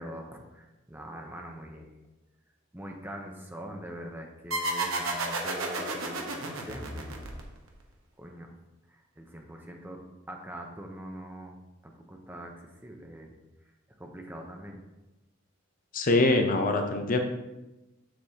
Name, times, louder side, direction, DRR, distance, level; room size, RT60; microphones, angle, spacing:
voice 1, 0.0-2.0 2.7-7.2 8.2-8.6 8.9-10.0 10.3-11.6 11.8-13.4 14.0-14.8, right 1 dB, 10° right, 2 dB, 0.7 m, -43 dB
sound 1, 4.5-7.8, right 2 dB, 65° right, 1.1 m, -32 dB
voice 2, 15.9-17.2, left 2 dB, 40° left, 5 dB, 0.6 m, -24 dB
7.6 x 6.8 x 2.8 m, 1.0 s
head